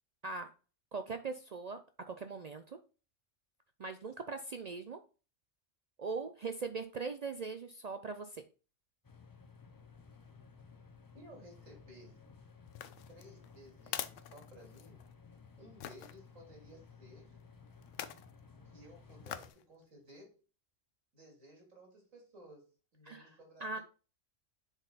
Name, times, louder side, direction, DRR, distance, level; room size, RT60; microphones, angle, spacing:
voice 1, 0.9-1.8 2.1-2.8 3.8-5.0 6.0-8.4 23.1-23.2 23.6-23.8, right 4 dB, 65° right, 8 dB, 0.4 m, -40 dB
sound 1, 9.0-19.5, left 5 dB, 35° left, 0.3 m, -57 dB
voice 2, 11.1-12.2 13.1-15.0 15.6-17.4 18.1-18.2 18.6-20.3 21.1-22.7 22.9-23.8, equal, 90° right, -1 dB, 3.3 m, -57 dB
sound 2, 12.7-15.1 15.8-16.1 17.8-18.3 19.2-19.6 20.1-20.2, left 11 dB, 80° left, 0.9 m, -44 dB
7.0 x 4.1 x 4.0 m, 0.34 s
omnidirectional pair, 1.3 m